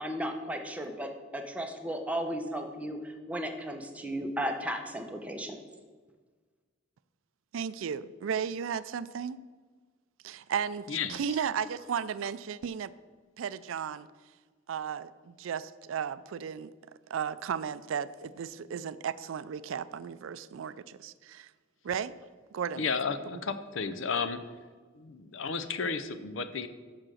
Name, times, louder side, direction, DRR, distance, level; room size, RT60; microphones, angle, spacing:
voice 1, 0.0-5.6, equal, 5° right, 3 dB, 0.8 m, -35 dB
voice 2, 7.5-9.4 10.2-12.9 13.4-14.1 14.7-16.7 17.1-21.5 21.8-22.1 22.5-22.8 23.3-23.4, right 7 dB, 90° right, 16 dB, 0.4 m, -34 dB
voice 3, 10.9-11.2 22.8-24.4 24.9-26.7, left 5 dB, 70° left, 11 dB, 0.6 m, -33 dB
7.5 x 5.9 x 6.3 m, 1.4 s
head